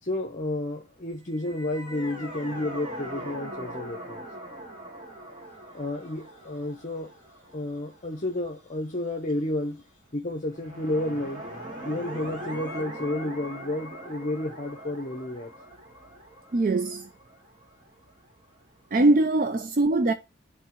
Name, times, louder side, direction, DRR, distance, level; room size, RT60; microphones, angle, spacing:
voice 1, 0.0-4.3 5.7-7.1 7.5-9.8 10.1-11.4 11.8-15.5, left 1 dB, 40° left, 0.8 m, -31 dB
sound 1, 1.3-8.6 10.5-18.2, right 1 dB, 25° right, 1.9 m, -41 dB
voice 2, 16.5-17.1 18.9-20.1, right 2 dB, 45° right, 0.4 m, -22 dB
11.0 x 3.8 x 3.0 m
head